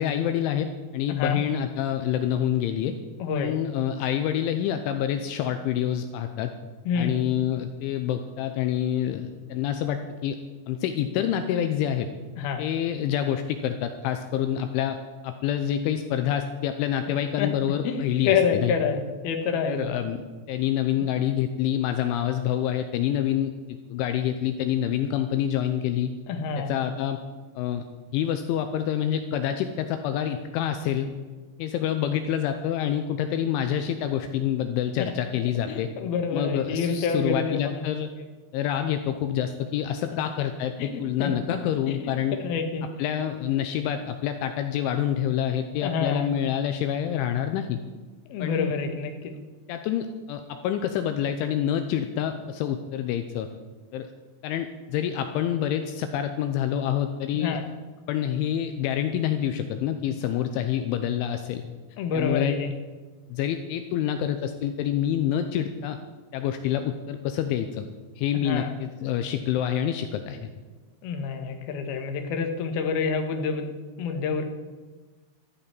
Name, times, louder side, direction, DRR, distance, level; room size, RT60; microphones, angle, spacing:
voice 1, 0.0-3.0 3.3-6.5 7.0-10.4 10.7-12.1 12.6-15.0 15.2-18.7 19.7-26.1 26.6-27.2 27.6-27.9 28.1-31.1 31.6-35.9 36.3-38.1 38.5-42.4 42.8-47.8 48.4-48.7 49.7-53.5 53.9-54.1 54.4-57.6 58.1-61.6 62.1-62.6 63.3-66.0 66.3-67.9 68.2-70.5, left 10 dB, 80° left, 7 dB, 3.0 m, -27 dB
voice 2, 3.2-3.5 6.9-7.2 12.4-12.6 17.4-17.5 17.8-19.8 26.3-26.7 35.7-37.6 40.8-40.9 41.2-41.3 41.9-42.0 42.4-42.8 45.8-46.3 48.3-49.3 57.4-57.6 62.0-62.7 68.4-68.7 71.0-74.4, left 5 dB, 65° left, 5 dB, 2.8 m, -27 dB
13.5 x 8.8 x 9.9 m, 1.3 s
omnidirectional pair, 5.8 m